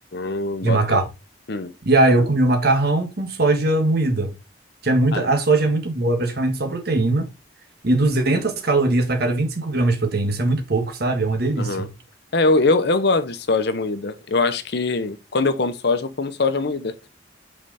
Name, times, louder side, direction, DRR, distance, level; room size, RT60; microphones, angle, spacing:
voice 1, 0.1-1.0 1.5-1.7 5.1-5.3 11.6-11.9 12.3-17.1, left 3 dB, 60° left, 0.8 m, -22 dB
voice 2, 0.6-1.1 1.8-4.3 4.8-7.3 7.8-11.9, right 2 dB, 55° right, 1.5 m, -20 dB
5.4 x 4.8 x 5.7 m
head